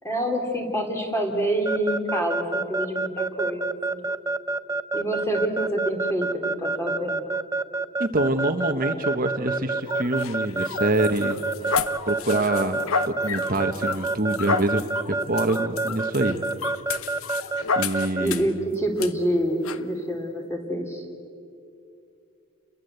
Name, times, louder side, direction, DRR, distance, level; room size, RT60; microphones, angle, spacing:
voice 1, 0.0-4.1 4.9-7.2 18.2-21.1, right 1 dB, 15° left, 3 dB, 3.2 m, -27 dB
Keyboard (musical) / Alarm, 1.7-18.3, right 3 dB, 15° right, 0.5 m, -27 dB
voice 2, 8.0-11.4 12.1-16.4 17.8-18.4, right 2 dB, 40° right, 6 dB, 1.3 m, -25 dB
sound 1, 9.9-18.6 19.0-19.1 19.6-19.8, left 5 dB, 75° left, 0.9 m, -31 dB
30.0 x 22.5 x 8.1 m, 2.6 s
head